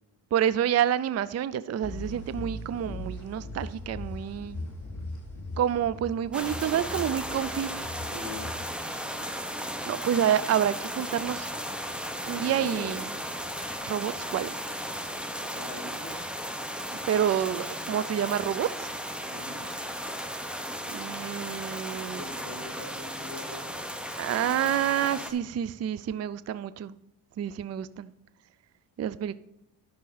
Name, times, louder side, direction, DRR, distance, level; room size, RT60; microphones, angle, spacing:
voice 1, 0.3-4.6 5.6-7.7 9.8-11.5 12.3-13.1 13.9-14.5 17.1-18.9 20.9-22.2 24.2-26.9 27.4-28.1 29.0-29.3, right 10 dB, 40° right, 16 dB, 0.4 m, -28 dB
sound 1, 1.8-9.2, left 1 dB, 40° left, 4.0 m, -39 dB
sound 2, 6.3-25.3, equal, ahead, 1.0 m, -35 dB
voice 2, 8.1-8.5 12.3-12.9 15.4-16.2 19.2-19.7 22.1-23.8, left 1 dB, 20° left, -2 dB, 3.9 m, -42 dB
11.0 x 6.2 x 4.0 m, 0.81 s
cardioid pair, 85°, 43 cm